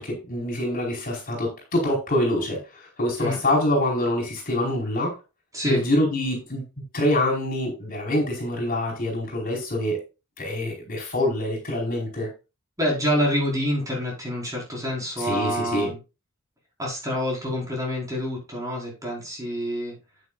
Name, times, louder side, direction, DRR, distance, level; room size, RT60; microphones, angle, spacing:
voice 1, 0.0-5.1 5.6-6.7 6.9-10.0 10.4-12.3 15.2-15.9, left 1 dB, 40° left, -1 dB, 4.8 m, -25 dB
voice 2, 12.8-16.0 16.8-20.0, equal, 15° right, -3 dB, 5.0 m, -27 dB
11.0 x 9.1 x 2.5 m, 0.28 s
head